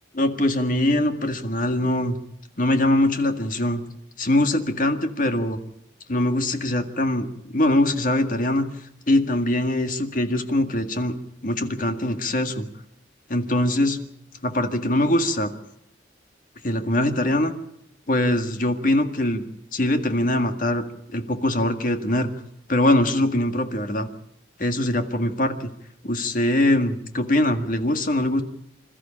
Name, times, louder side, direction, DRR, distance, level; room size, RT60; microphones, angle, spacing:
voice 1, 0.1-2.2 2.6-3.8 4.2-5.6 6.1-8.7 9.1-11.2 11.4-12.7 13.3-14.0 14.4-15.5 16.6-17.5 18.1-19.4 19.7-20.8 21.1-22.3 22.7-24.1 24.6-25.7 26.0-28.4, left 1 dB, 45° left, 7 dB, 1.9 m, -22 dB
27.0 x 13.5 x 8.7 m, 0.83 s
head